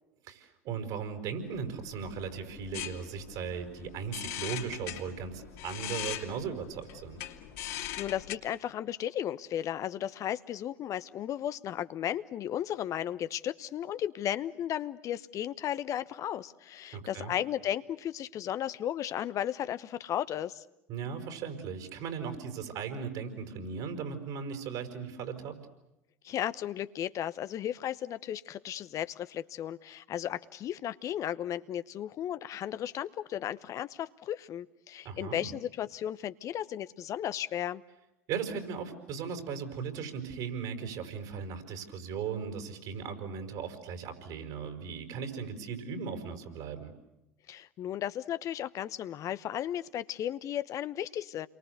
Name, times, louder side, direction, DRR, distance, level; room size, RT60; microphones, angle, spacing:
voice 1, 0.2-7.2 16.9-17.3 20.9-25.6 35.0-35.5 38.3-46.9, right 6 dB, 60° right, 7 dB, 5.5 m, -37 dB
sound 1, 1.5-8.4, left 12 dB, 65° left, 2.8 m, -41 dB
voice 2, 8.0-20.6 26.2-37.8 47.5-51.5, left 11 dB, 45° left, 13 dB, 1.0 m, -35 dB
30.0 x 23.5 x 8.2 m, 0.89 s
hypercardioid pair, 70°, 8 cm